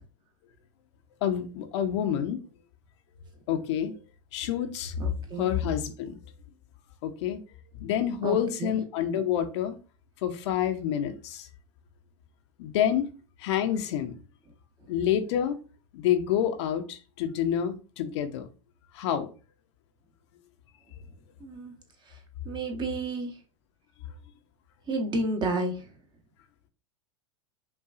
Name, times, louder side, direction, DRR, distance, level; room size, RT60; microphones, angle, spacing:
voice 1, 1.2-2.4 3.5-3.9 4.3-5.0 5.4-6.2 7.0-7.4 7.8-9.8 10.2-11.5 12.6-13.1 13.4-14.1 14.9-15.6 15.9-18.5 18.9-19.3, left 10 dB, 60° left, 0.6 m, -28 dB
voice 2, 5.0-5.5 8.2-8.7 21.4-21.7 22.5-23.3 24.9-25.7, right 2 dB, 30° right, 0.9 m, -31 dB
5.5 x 2.3 x 2.5 m
hypercardioid pair, 100°, 16 cm